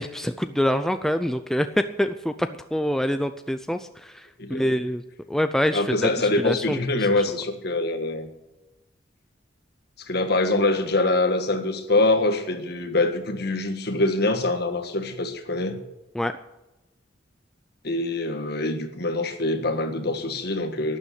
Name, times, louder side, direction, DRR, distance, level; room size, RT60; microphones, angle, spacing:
voice 1, 0.0-5.0 5.3-7.2 16.1-16.4, equal, ahead, 9 dB, 0.4 m, -26 dB
voice 2, 4.4-4.7 5.7-8.3 10.1-15.8 17.8-21.0, left 2 dB, 55° left, 6 dB, 1.6 m, -24 dB
12.0 x 9.9 x 8.2 m, 1.0 s
head